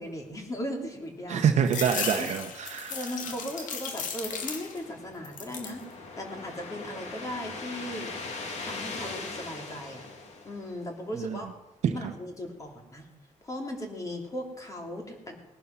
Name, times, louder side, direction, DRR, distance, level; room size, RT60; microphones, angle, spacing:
voice 1, 0.0-1.5 2.1-2.3 2.9-5.8 6.2-8.1 8.6-10.1 10.4-11.5 11.9-13.0 13.4-15.4, equal, 25° left, 2 dB, 3.0 m, -37 dB
voice 2, 1.3-3.1 11.2-11.4 11.8-12.1, right 8 dB, 65° right, 4 dB, 1.1 m, -26 dB
sound 1, 1.7-4.9 5.2-5.8 6.3-7.0, left 6 dB, 90° left, 2.1 m, -36 dB
sound 2, 4.5-11.1, left 3 dB, 60° left, 2.5 m, -40 dB
19.0 x 11.0 x 6.0 m, 0.96 s
cardioid pair, 145°, 13 cm